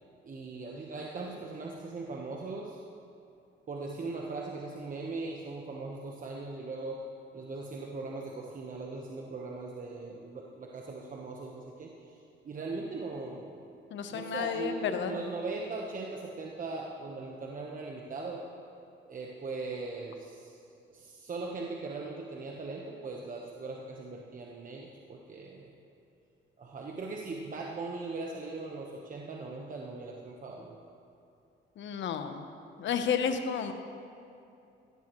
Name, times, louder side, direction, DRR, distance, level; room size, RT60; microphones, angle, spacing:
voice 1, 0.2-2.8 3.7-7.0 7.3-13.7 14.1-18.4 19.0-20.6 20.9-25.8 26.6-30.8, right 3 dB, 40° right, -1 dB, 1.2 m, -39 dB
voice 2, 13.9-15.2 31.8-32.5 32.8-33.7, left 7 dB, 70° left, 8 dB, 1.0 m, -31 dB
16.5 x 13.5 x 3.1 m, 2.7 s
cardioid pair, 90°, 20 cm